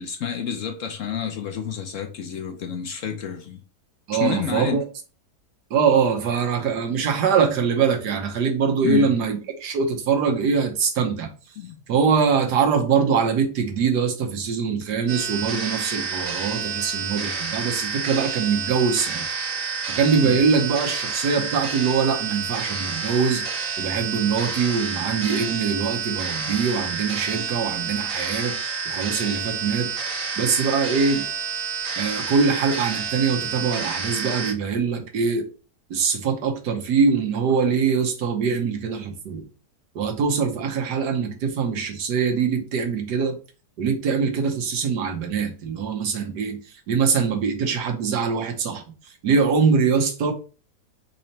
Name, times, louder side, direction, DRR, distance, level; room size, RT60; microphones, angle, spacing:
voice 1, 0.0-3.6 4.2-4.8 8.8-9.1 11.6-11.8 20.2-20.4, left 8 dB, 65° left, 0.8 m, -29 dB
voice 2, 4.1-4.8 5.7-11.3 11.9-19.3 19.9-23.4 23.8-28.5 28.9-29.9 30.4-31.3 32.0-35.5 35.9-39.4 39.9-43.4 43.8-46.6 46.9-48.8 49.2-50.3, right 5 dB, 85° right, 1.5 m, -23 dB
sound 1, 15.1-34.5, right 6 dB, 60° right, 1.3 m, -29 dB
4.1 x 2.9 x 4.3 m
omnidirectional pair, 1.7 m